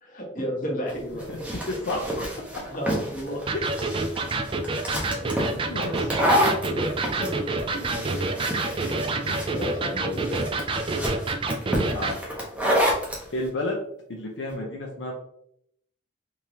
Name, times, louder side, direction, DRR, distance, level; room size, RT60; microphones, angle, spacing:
voice 1, 0.0-1.2 2.7-3.4 5.0-5.2 6.7-7.3 8.3-8.5 9.2-10.5, equal, 45° left, -2 dB, 1.1 m, -32 dB
sound 1, 0.9-13.2, equal, 5° right, 0.7 m, -28 dB
voice 2, 1.3-2.3 2.5-2.6 3.5-3.6 5.2-6.1 7.7-7.8 9.3-9.6 11.9-12.2 13.3-13.8 14.1-15.1, left 2 dB, 70° left, -2 dB, 0.6 m, -32 dB
Electric guitar, 3.5-12.2, right 3 dB, 25° right, 0.3 m, -28 dB
3.6 x 3.1 x 2.8 m, 0.72 s
head